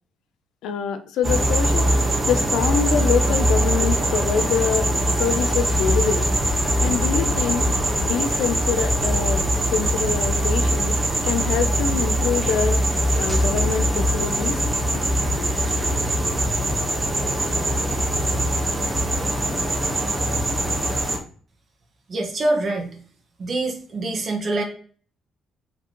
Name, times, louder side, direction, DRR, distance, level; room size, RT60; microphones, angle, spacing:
voice 1, 0.6-1.9 2.2-6.3 6.8-7.7 8.0-9.5 9.7-11.0 11.2-12.8 13.2-14.6, left 7 dB, 85° left, 8 dB, 0.7 m, -25 dB
sound 1, 1.2-21.2, right 1 dB, 20° right, 1.3 m, -22 dB
sound 2, 6.2-13.9, equal, 45° left, 1.2 m, -37 dB
voice 2, 22.1-22.9 23.4-24.6, right 2 dB, 45° right, 1 dB, 1.5 m, -24 dB
4.6 x 3.7 x 3.1 m, 0.43 s
cardioid pair, 90°, 0 cm